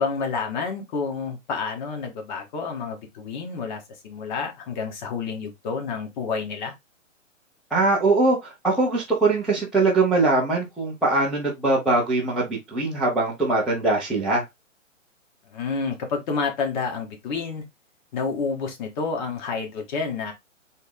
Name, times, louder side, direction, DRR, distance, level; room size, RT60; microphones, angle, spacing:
voice 1, 0.0-6.7 15.5-17.6 18.1-20.3, left 5 dB, 35° left, 1.8 m, -29 dB
voice 2, 7.7-14.4, right 2 dB, ahead, 0.5 m, -22 dB
4.0 x 3.7 x 3.6 m
hypercardioid pair, 135°, 39 cm